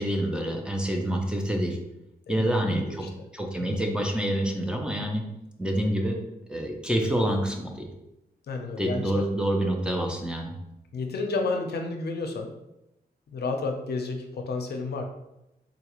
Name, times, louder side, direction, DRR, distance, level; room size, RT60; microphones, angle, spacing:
voice 1, 0.0-1.8 2.3-2.8 3.3-5.2 5.6-6.2 6.5-7.9 8.8-10.5, right 1 dB, 5° right, 0 dB, 0.4 m, -27 dB
voice 2, 2.3-3.1 3.6-3.8 8.5-9.2 10.9-12.5 13.3-15.1, left 3 dB, 75° left, 4 dB, 0.5 m, -31 dB
3.8 x 2.3 x 2.9 m, 0.90 s
wide cardioid pair, 125°, 17 cm